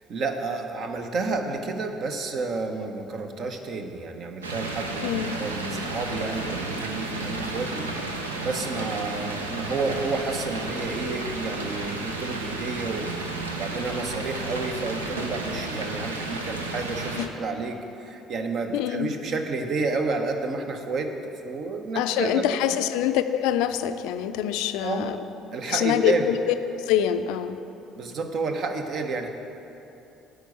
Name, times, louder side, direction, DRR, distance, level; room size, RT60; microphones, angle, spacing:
voice 1, 0.0-22.7 24.8-25.1 25.5-26.3 27.9-29.3, right 3 dB, 50° right, 5 dB, 0.9 m, -30 dB
sound 1, 4.4-17.3, right 2 dB, 85° right, 0.6 m, -32 dB
voice 2, 5.0-5.4 17.2-17.3 18.7-19.1 22.0-25.2 25.7-27.6, left 10 dB, 65° left, 10 dB, 0.4 m, -25 dB
9.4 x 5.0 x 7.8 m, 2.9 s
figure-of-eight pair, 50°, 0 cm